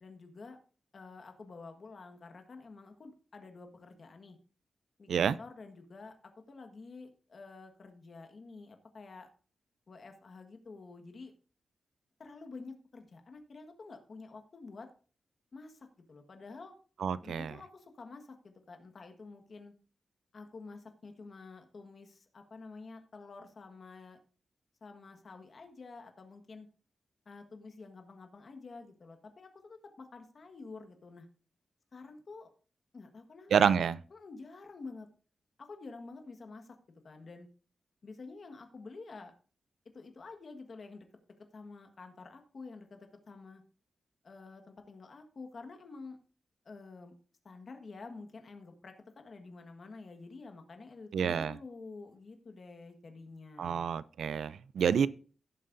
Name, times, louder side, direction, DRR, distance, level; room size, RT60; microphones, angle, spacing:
voice 1, 0.0-0.6 0.9-4.4 5.0-9.3 9.9-11.3 12.2-14.9 15.5-16.7 17.2-19.7 20.3-24.2 24.8-26.7 27.2-31.3 31.9-32.5 32.9-35.1 35.6-36.7 37.0-37.5 38.0-39.3 39.9-41.1 41.5-43.6 44.2-46.2 46.6-47.1 47.4-53.9, left 3 dB, 45° left, 1.5 m, -49 dB
voice 2, 17.0-17.5 33.5-34.0 51.1-51.6 53.6-55.1, right 7 dB, 90° right, 0.4 m, -28 dB
16.5 x 7.5 x 2.6 m
wide cardioid pair, 155°, 0 cm